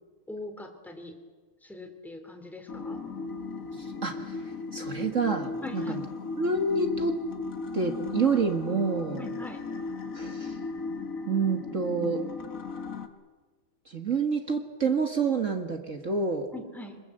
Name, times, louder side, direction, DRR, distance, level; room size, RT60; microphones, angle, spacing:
voice 1, 0.3-1.2 1.6-3.0 5.6-6.0 9.2-9.6 16.5-17.0, left 2 dB, ahead, 5 dB, 2.8 m, -41 dB
sound 1, 2.7-13.1, left 4 dB, 45° left, 1.8 m, -36 dB
voice 2, 4.0-4.3 4.7-6.0 6.4-7.1 7.7-9.3 10.1-10.6 11.3-12.2 13.9-16.5, right 4 dB, 40° right, 5 dB, 1.6 m, -28 dB
25.5 x 21.0 x 7.8 m, 1.4 s
omnidirectional pair, 2.3 m